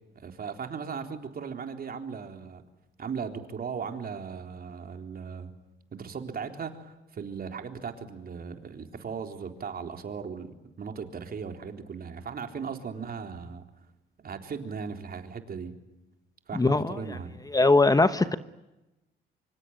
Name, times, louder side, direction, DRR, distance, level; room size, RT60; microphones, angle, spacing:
voice 1, 0.1-2.6 3.0-5.5 5.9-13.6 14.2-15.7 16.5-17.4, right 6 dB, 50° right, 5 dB, 3.8 m, -37 dB
voice 2, 16.5-17.0 17.5-18.4, left 3 dB, 20° left, 11 dB, 1.1 m, -21 dB
26.0 x 25.0 x 9.2 m, 0.98 s
cardioid pair, 90°, 20 cm